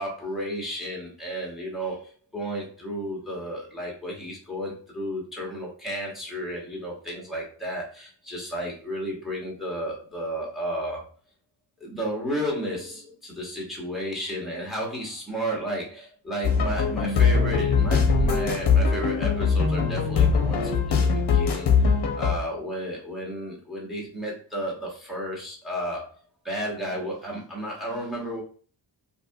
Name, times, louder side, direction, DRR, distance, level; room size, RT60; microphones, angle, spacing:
voice 1, 0.0-11.0 11.8-21.7 22.2-26.1 26.4-28.4, equal, ahead, -3 dB, 1.1 m, -33 dB
sound 1, 16.4-22.4, left 5 dB, 55° left, 0.7 m, -21 dB
4.0 x 2.7 x 2.3 m, 0.41 s
wide cardioid pair, 165°, 47 cm